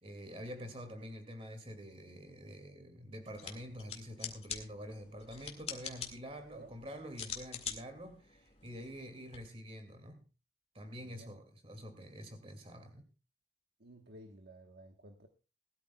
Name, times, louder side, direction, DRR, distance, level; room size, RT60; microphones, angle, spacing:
voice 1, 0.0-10.2 10.7-13.0, equal, 30° right, 2.3 m, -47 dB
sound 1, 3.3-9.4, left 7 dB, 35° left, 2.0 m, -46 dB
voice 2, 11.0-11.4 13.8-15.3, right 1 dB, 60° right, 1.3 m, -54 dB
20.0 x 13.0 x 2.3 m
head